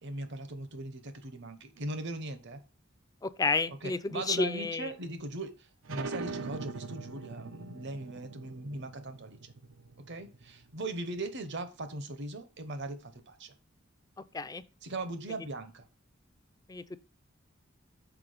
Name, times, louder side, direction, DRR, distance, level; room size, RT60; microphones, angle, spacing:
voice 1, 0.0-2.6 3.8-9.5 10.1-13.5 14.8-15.8, right 2 dB, 65° right, 1.0 m, -39 dB
voice 2, 3.2-4.9 14.3-14.6 16.7-17.0, left 4 dB, 20° left, 0.5 m, -31 dB
sound 1, 5.8-11.1, right 4 dB, 80° right, 0.7 m, -42 dB
6.0 x 4.6 x 5.0 m
head